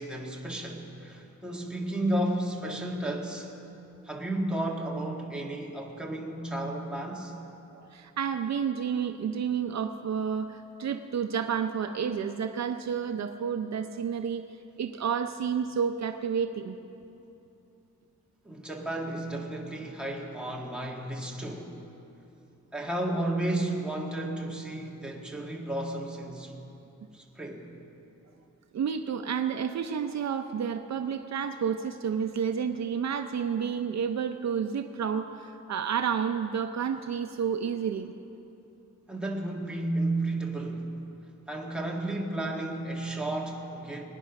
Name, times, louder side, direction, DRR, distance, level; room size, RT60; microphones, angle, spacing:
voice 1, 0.0-3.5 4.1-7.4 18.4-21.8 22.7-26.5 27.1-27.7 39.1-40.9 41.5-44.1, right 1 dB, 5° right, -2 dB, 1.8 m, -32 dB
voice 2, 7.7-14.4 14.8-16.8 28.7-38.1, right 7 dB, 55° right, 7 dB, 0.6 m, -30 dB
24.0 x 9.8 x 5.9 m, 2.9 s
wide cardioid pair, 155°, 32 cm